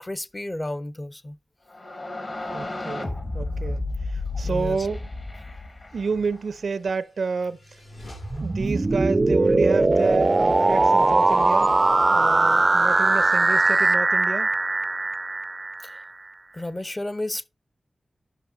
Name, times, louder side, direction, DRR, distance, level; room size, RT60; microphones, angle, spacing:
voice 1, 0.0-1.4 4.4-4.8 15.8-15.9 16.5-17.5, left 1 dB, 20° left, 0.7 m, -32 dB
sound 1, 1.7-6.5, left 2 dB, 45° left, 1.6 m, -32 dB
voice 2, 2.5-5.0 5.9-7.8 8.4-11.7 12.1-14.5, right 4 dB, 85° right, 0.6 m, -29 dB
sound 2, 5.9-11.5, left 2 dB, 75° left, 5.2 m, -47 dB
sound 3, 8.1-16.0, right 2 dB, 35° right, 0.4 m, -20 dB
11.0 x 5.6 x 3.9 m
wide cardioid pair, 100°, 0 cm